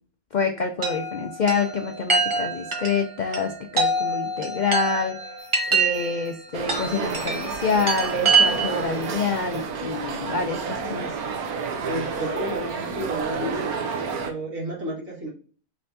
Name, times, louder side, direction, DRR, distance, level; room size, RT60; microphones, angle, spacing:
voice 1, 0.3-5.2 5.7-11.2, left 5 dB, 80° left, 4 dB, 0.4 m, -27 dB
Chime, 0.8-8.9, right 4 dB, 30° right, 0.6 m, -25 dB
sound 1, 5.4-10.6, right 1 dB, 45° right, 1.4 m, -48 dB
sound 2, 6.5-14.3, right 5 dB, 85° right, 1.3 m, -30 dB
voice 2, 11.8-13.7 14.1-15.3, right 1 dB, 70° right, -5 dB, 2.5 m, -31 dB
5.1 x 3.3 x 2.6 m, 0.41 s
omnidirectional pair, 1.5 m